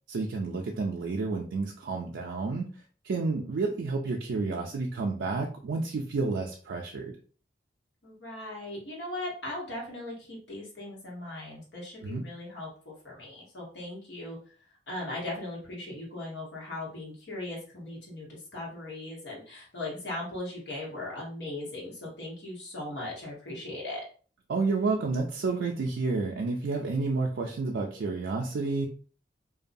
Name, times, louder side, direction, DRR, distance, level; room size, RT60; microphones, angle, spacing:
voice 1, 0.1-2.7 3.0-7.1 12.0-12.2 24.5-28.9, right 3 dB, 80° right, 0 dB, 0.4 m, -30 dB
voice 2, 8.0-14.4 14.9-24.0, left 2 dB, 85° left, -4 dB, 1.2 m, -38 dB
2.6 x 2.2 x 2.6 m, 0.41 s
head